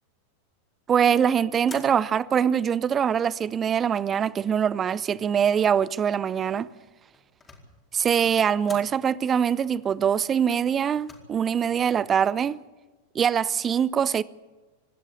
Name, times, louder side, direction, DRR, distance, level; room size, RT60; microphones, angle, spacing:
voice 1, 0.9-6.7 7.9-12.6 13.1-14.2, right 8 dB, 25° right, 0.6 m, -23 dB
sound 1, 1.6-2.3 3.0-3.6 6.9-7.8 8.6-9.0 10.7-11.2, left 3 dB, 15° left, 4.5 m, -47 dB
26.5 x 12.5 x 8.6 m
figure-of-eight pair, 90°, 0 cm